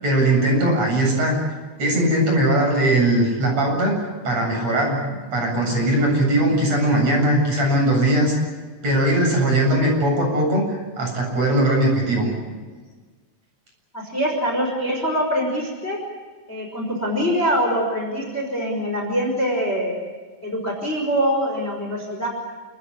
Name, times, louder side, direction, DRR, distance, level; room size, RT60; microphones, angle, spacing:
voice 1, 0.0-1.4 1.8-4.0 4.2-8.3 8.8-12.5, right 1 dB, 35° right, 0 dB, 8.9 m, -20 dB
voice 2, 13.9-16.0 16.5-20.0 20.4-22.3, equal, 15° left, 1 dB, 5.1 m, -24 dB
28.5 x 20.0 x 8.6 m, 1.4 s
omnidirectional pair, 5.0 m